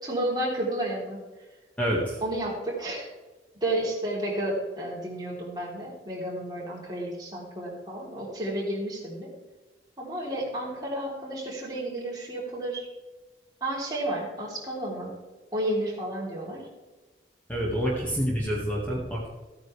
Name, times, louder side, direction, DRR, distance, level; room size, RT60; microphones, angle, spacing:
voice 1, 0.0-1.2 2.2-3.1 3.6-9.3 10.0-12.9 13.6-15.1 15.5-16.7, right 1 dB, 25° right, -5 dB, 3.5 m, -31 dB
voice 2, 1.8-2.2 17.5-19.3, equal, 10° left, -5 dB, 1.9 m, -27 dB
15.0 x 9.4 x 3.4 m, 1.2 s
head